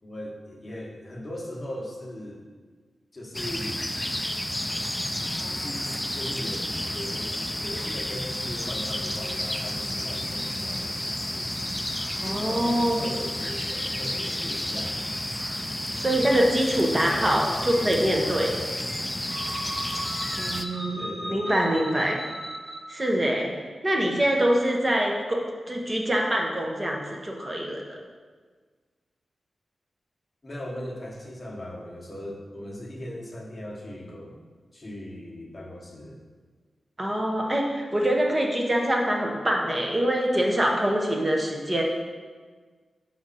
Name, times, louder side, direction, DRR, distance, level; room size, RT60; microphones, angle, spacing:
voice 1, 0.0-2.4 3.1-3.9 5.5-11.5 12.2-15.1 16.7-19.2 20.9-21.7 30.4-34.4 34.7-36.2, left 1 dB, 25° left, -2 dB, 1.1 m, -39 dB
sound 1, 3.3-20.7, left 1 dB, 10° left, 0.3 m, -31 dB
voice 2, 12.2-13.0 15.9-18.5 20.4-21.0 21.3-22.2 22.9-23.5 23.8-28.0 37.0-41.8, right 1 dB, 20° right, 0 dB, 0.9 m, -24 dB
sound 2, 19.3-23.0, equal, 90° right, 1.9 m, -37 dB
6.2 x 5.0 x 4.1 m, 1.5 s
wide cardioid pair, 115°, 0 cm